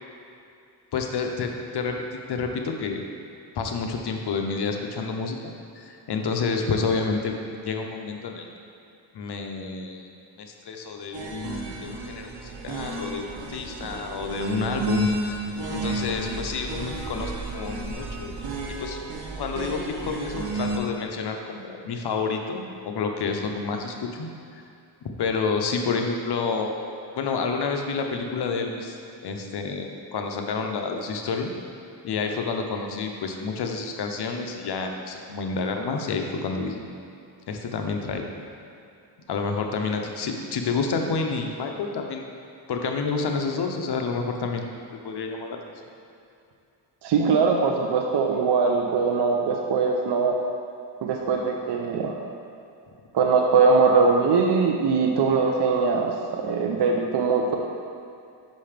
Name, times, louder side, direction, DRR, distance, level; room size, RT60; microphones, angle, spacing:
voice 1, 0.9-2.0 2.3-3.0 3.5-5.4 5.8-7.3 7.6-8.5 9.1-10.1 10.4-15.4 15.7-18.4 18.8-19.1 19.4-24.6 25.2-26.8 27.1-31.5 32.0-36.8 37.5-38.2 39.3-42.3 42.7-44.7 45.0-45.7, left 4 dB, 60° left, 3 dB, 0.8 m, -29 dB
sound 1, 11.1-20.8, right 2 dB, 80° right, 1.2 m, -32 dB
voice 2, 47.0-50.3 51.0-52.2 53.1-57.6, right 4 dB, 65° right, 1 dB, 0.7 m, -21 dB
5.7 x 5.3 x 5.1 m, 2.5 s
cardioid pair, 100°, 44 cm